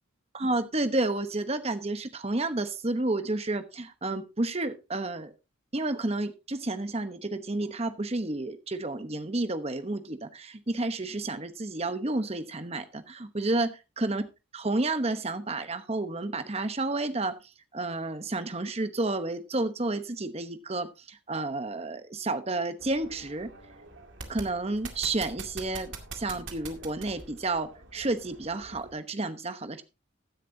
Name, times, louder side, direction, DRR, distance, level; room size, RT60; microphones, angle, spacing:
voice 1, 0.3-5.3 5.7-13.7 14.0-14.2 14.5-17.3 17.7-23.5 24.3-29.8, right 2 dB, 30° right, 10 dB, 1.0 m, -31 dB
sound 1, 22.8-28.9, right 3 dB, 60° right, 2.2 m, -44 dB
15.0 x 10.0 x 2.7 m, 0.27 s
head